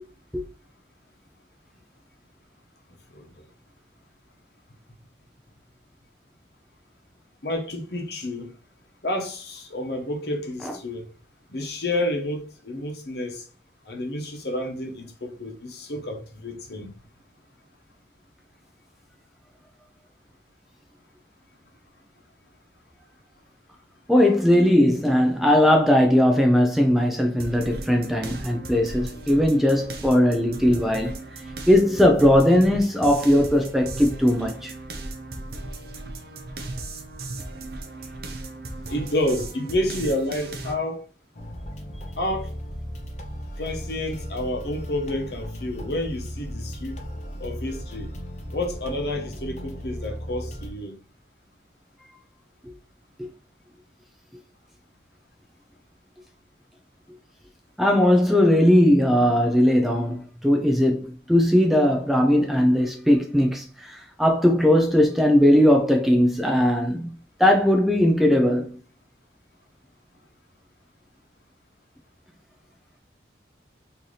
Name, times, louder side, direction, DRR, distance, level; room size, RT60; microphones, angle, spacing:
voice 1, 3.1-3.4 7.4-8.5 9.0-11.0 11.5-13.5 13.9-16.9 38.9-41.0 42.2-42.5 43.6-47.0 47.4-48.1 48.5-51.0, left 1 dB, 65° left, 0.9 m, -29 dB
voice 2, 24.1-31.2 31.7-34.7 57.8-68.7, left 1 dB, ahead, 0.4 m, -19 dB
sound 1, 27.4-40.7, right 2 dB, 55° right, 0.6 m, -36 dB
sound 2, 41.3-50.7, equal, 40° left, 0.6 m, -36 dB
3.2 x 2.8 x 3.9 m
head